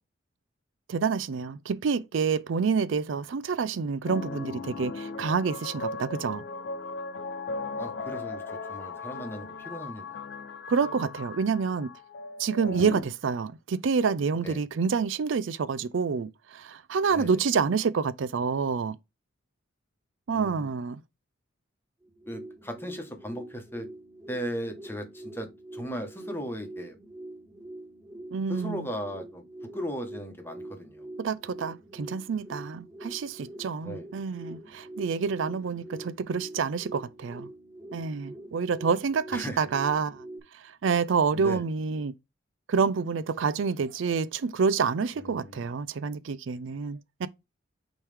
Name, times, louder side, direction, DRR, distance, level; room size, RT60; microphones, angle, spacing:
voice 1, 0.9-6.4 10.7-11.9 12.4-19.0 20.3-21.0 28.3-28.9 31.2-37.5 37.9-40.2 40.6-42.1 42.7-47.3, right 5 dB, 70° right, 0.4 m, -28 dB
sound 1, 4.0-13.0, left 3 dB, 65° left, 0.7 m, -37 dB
voice 2, 7.8-10.2 14.4-14.6 17.1-17.4 20.3-20.7 22.3-23.9 24.3-27.0 28.5-29.4 29.7-31.1 33.8-34.1 39.3-39.6 41.3-41.7 45.1-45.7, equal, 10° left, 1.2 m, -37 dB
sound 2, 22.0-40.4, right 1 dB, 15° right, 1.2 m, -45 dB
8.7 x 3.2 x 3.4 m
head